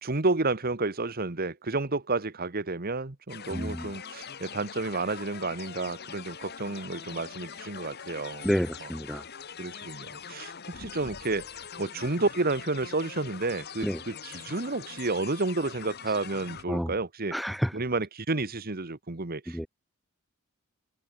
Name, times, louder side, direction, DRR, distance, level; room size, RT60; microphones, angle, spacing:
voice 1, 0.0-8.5 8.8-8.9 9.6-10.5 10.8-11.4 11.8-17.4 17.7-19.6, right 3 dB, 45° right, 1.4 m, -31 dB
sound 1, 3.3-16.6, left 7 dB, 50° left, 1.5 m, -43 dB
voice 2, 3.5-3.9 8.4-9.2 13.8-14.0 16.7-16.9 17.3-17.7 19.5-19.7, equal, ahead, 0.4 m, -29 dB
head